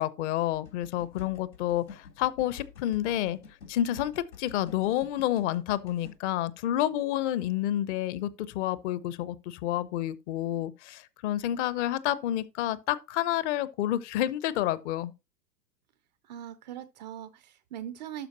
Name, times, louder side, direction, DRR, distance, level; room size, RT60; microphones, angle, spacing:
voice 1, 0.0-3.4 3.7-4.1 4.4-15.1, left 13 dB, 45° left, 0.8 m, -29 dB
sound 1, 0.5-6.1, left 6 dB, 80° left, 3.5 m, -49 dB
voice 2, 16.2-18.3, right 10 dB, 30° right, 0.4 m, -41 dB
12.0 x 4.6 x 2.9 m
hypercardioid pair, 105°, 50 cm